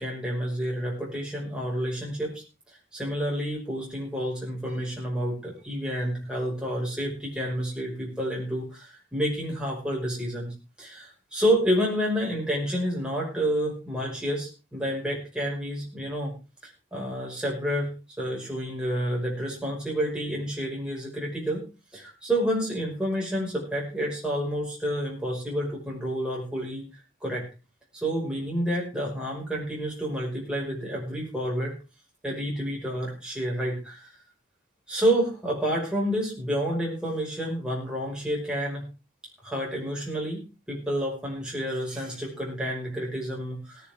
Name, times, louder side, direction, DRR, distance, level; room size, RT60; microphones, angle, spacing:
voice 1, 0.0-2.4 2.9-16.3 16.6-21.7 21.9-27.5 27.9-31.7 32.2-34.1 34.9-38.8 39.4-40.4 40.7-43.9, equal, 5° right, -3 dB, 5.6 m, -29 dB
17.5 x 11.0 x 3.7 m, 0.32 s
head